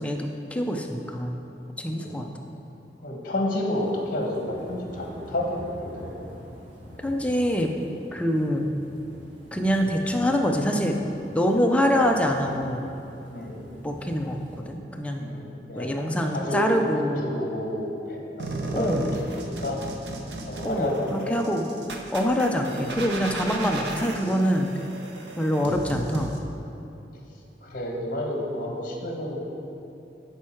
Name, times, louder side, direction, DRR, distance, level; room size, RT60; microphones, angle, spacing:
voice 1, 0.0-1.4 1.8-2.3 7.0-7.7 8.1-8.7 9.5-11.0 11.3-12.9 13.8-15.2 15.8-17.3 18.7-19.0 20.6-21.7 22.1-24.7 25.4-26.3, equal, 5° left, 2 dB, 0.5 m, -25 dB
voice 2, 3.0-6.1 6.4-6.5 13.3-13.6 15.2-15.9 16.3-16.6 16.9-19.0 19.3-19.8 20.5-21.4 27.6-29.4, left 1 dB, 50° left, 0 dB, 1.2 m, -30 dB
sound 1, 3.7-14.6, equal, 90° right, 1.6 m, -46 dB
sound 2, 18.4-26.4, right 2 dB, 70° right, 0.8 m, -35 dB
11.0 x 4.7 x 4.5 m, 2.9 s
head